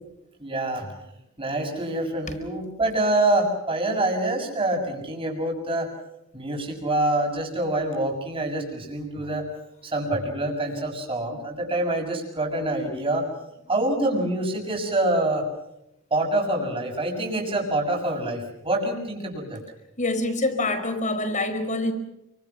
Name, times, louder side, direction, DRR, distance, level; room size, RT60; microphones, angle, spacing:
voice 1, 0.4-0.9 1.4-5.9 6.3-9.5 9.8-13.3 13.7-15.5 16.1-19.6, right 1 dB, 25° right, 6.9 m, -26 dB
voice 2, 20.0-21.9, left 2 dB, 35° left, 4.9 m, -26 dB
30.0 x 25.0 x 6.0 m
head